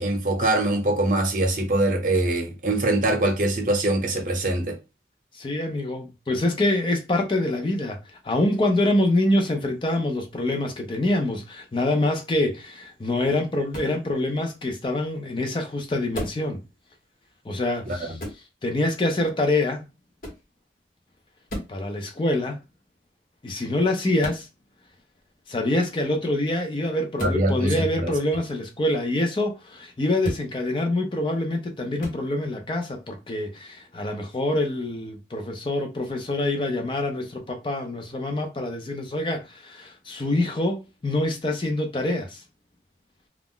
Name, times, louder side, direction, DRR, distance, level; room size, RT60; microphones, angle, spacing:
voice 1, 0.0-4.8 17.9-18.2 27.2-28.1, right 1 dB, 45° right, 0.7 m, -23 dB
voice 2, 5.3-8.0 8.2-16.6 17.5-18.2 18.6-19.8 21.7-22.6 23.4-24.5 25.5-42.4, left 1 dB, 30° left, 0.4 m, -25 dB
sound 1, 13.7-14.0 16.1-16.5 18.2-18.4 20.2-20.5 21.5-21.8 24.2-24.4 27.2-27.4 30.2-30.5 32.0-32.2, equal, 50° left, 1.1 m, -33 dB
2.4 x 2.0 x 3.6 m
head